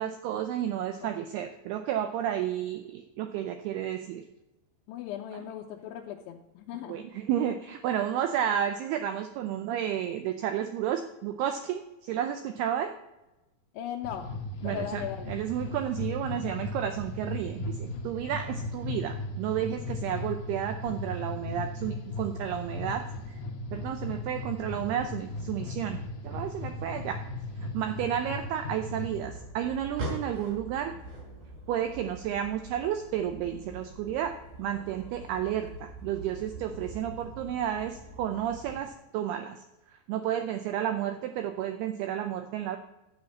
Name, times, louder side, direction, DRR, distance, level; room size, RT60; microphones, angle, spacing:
voice 1, 0.0-4.2 6.9-12.9 14.6-23.1 23.7-27.2 27.7-30.9 31.7-39.6 40.1-42.8, right 10 dB, 85° right, 7 dB, 2.3 m, -32 dB
voice 2, 4.9-7.0 13.7-14.3 14.6-15.3, left 10 dB, 90° left, 0 dB, 3.1 m, -38 dB
sound 1, 14.0-29.2, left 2 dB, 70° left, 1.6 m, -37 dB
sound 2, 29.2-38.8, right 2 dB, 50° right, 3.2 m, -43 dB
12.0 x 5.2 x 8.4 m, 0.98 s
omnidirectional pair, 5.3 m